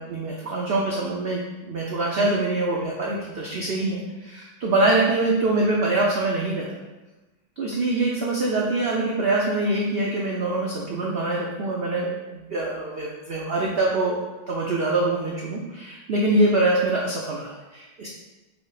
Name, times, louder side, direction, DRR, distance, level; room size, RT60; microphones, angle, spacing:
voice 1, 0.0-6.6 7.6-14.2 14.5-18.1, right 2 dB, 85° right, -3 dB, 0.5 m, -24 dB
5.2 x 2.1 x 4.7 m, 1.1 s
omnidirectional pair, 1.8 m